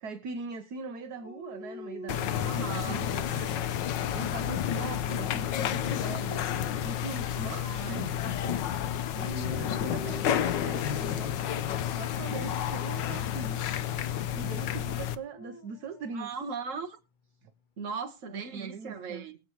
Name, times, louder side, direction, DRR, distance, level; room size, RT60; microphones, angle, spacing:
voice 1, 0.0-3.7 4.1-6.5 6.8-8.6 9.2-11.7 11.9-13.7 14.3-16.3 18.3-19.3, right 5 dB, 65° right, 1.3 m, -41 dB
Dog, 1.2-3.4 4.0-4.8 8.9-11.2 12.0-12.4 15.0-16.3, left 2 dB, 40° left, 0.7 m, -46 dB
sound 1, 2.1-15.2, left 10 dB, 75° left, 1.4 m, -31 dB
voice 2, 2.4-3.1 7.6-8.2 16.1-17.0 17.8-19.4, right 5 dB, 45° right, 1.6 m, -38 dB
22.0 x 7.7 x 3.0 m
omnidirectional pair, 2.1 m